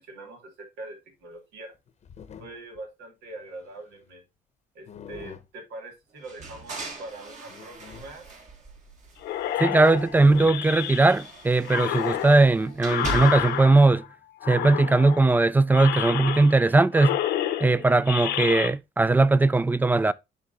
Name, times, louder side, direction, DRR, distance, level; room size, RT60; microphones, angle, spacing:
voice 1, 0.0-1.7 2.4-4.2 4.7-8.3, right 2 dB, 90° right, 2.3 m, -43 dB
sound 1, 1.7-2.8 3.4-4.2 4.9-5.5 6.4-6.5 7.5-8.1 9.2-9.3 9.6-9.7 10.1-10.6 11.9-12.0, left 7 dB, 40° left, 0.8 m, -44 dB
sound 2, 6.2-9.4 9.8-13.7, right 3 dB, 45° right, 1.7 m, -39 dB
sound 3, 9.2-11.3 11.6-14.0 14.4-15.3 15.7-16.7 16.9-18.7, left 12 dB, 80° left, 0.9 m, -30 dB
voice 2, 9.6-14.0 14.5-17.2 17.6-20.1, right 3 dB, 10° right, 0.3 m, -19 dB
11.0 x 3.7 x 2.5 m
cardioid pair, 110°, 17 cm